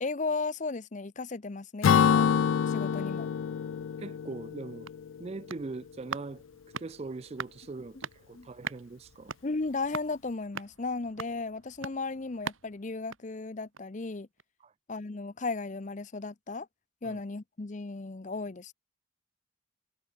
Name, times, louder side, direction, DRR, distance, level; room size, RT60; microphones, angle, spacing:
voice 1, 0.0-2.3 2.7-3.3 8.3-8.5 9.4-14.3 14.9-16.7 17.0-18.7, left 3 dB, 40° left, 0.6 m, -35 dB
Acoustic guitar / Strum, 1.8-5.5, left 7 dB, 80° left, 0.3 m, -26 dB
voice 2, 4.0-4.9 5.2-6.4 6.8-9.3 14.6-14.7 17.0-17.2, right 3 dB, 30° right, 0.4 m, -41 dB
sound 1, 4.5-14.0 14.4-14.5, right 5 dB, 85° right, 1.9 m, -44 dB
head